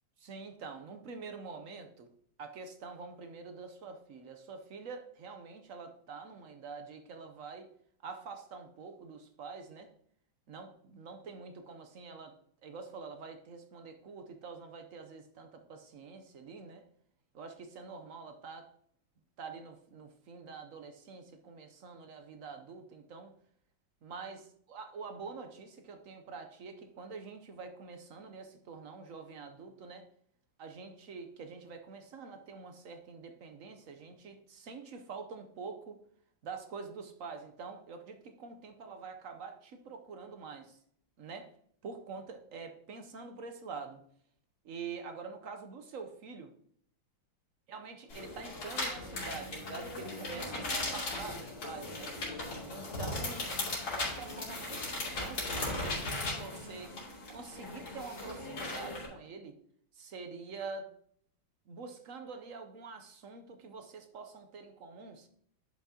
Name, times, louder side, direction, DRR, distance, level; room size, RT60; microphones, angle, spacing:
voice 1, 0.2-2.1 2.4-7.7 8.0-9.9 10.5-12.3 12.6-16.8 17.3-18.7 19.4-23.3 24.0-30.1 30.6-36.0 36.4-40.8 41.2-41.5 41.8-44.0 44.6-46.5 47.7-52.1 52.7-53.6 53.9-57.0 57.3-59.6 59.9-60.9 61.7-65.3, right 4 dB, 60° right, 6 dB, 0.9 m, -46 dB
sound 1, 48.1-59.1, left 2 dB, 80° left, 3.5 m, -38 dB
10.5 x 5.8 x 2.8 m, 0.64 s
omnidirectional pair, 2.1 m